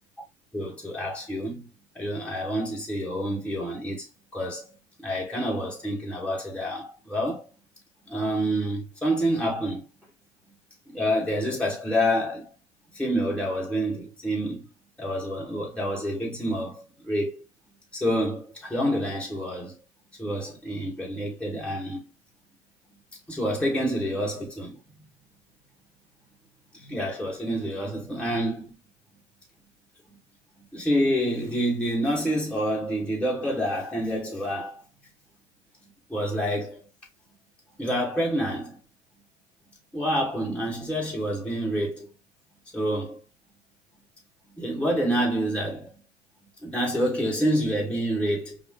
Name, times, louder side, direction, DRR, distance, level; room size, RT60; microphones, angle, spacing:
voice 1, 0.5-1.7 1.9-4.1 4.3-7.5 8.1-9.9 10.9-12.5 12.9-14.7 15.0-17.4 17.9-19.8 20.2-22.0 23.3-24.8 26.7-28.7 30.1-30.2 30.6-34.8 36.1-36.8 37.8-38.8 39.9-42.1 42.7-43.2 44.5-46.0 46.6-48.6, equal, 5° left, 1.5 m, -28 dB
5.3 x 2.1 x 2.9 m
hypercardioid pair, 100°, 37 cm